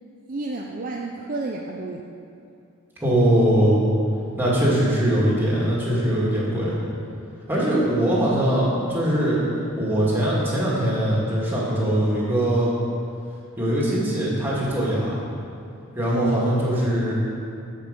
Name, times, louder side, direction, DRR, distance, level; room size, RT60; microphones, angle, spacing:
voice 1, 0.3-2.0 16.1-16.5, right 3 dB, 40° right, 0 dB, 0.5 m, -30 dB
voice 2, 3.0-3.8 4.4-6.7 7.5-9.4 9.8-12.7 13.6-15.1 15.9-17.1, right 1 dB, 10° right, -7 dB, 2.1 m, -21 dB
13.0 x 5.4 x 5.2 m, 2.6 s
head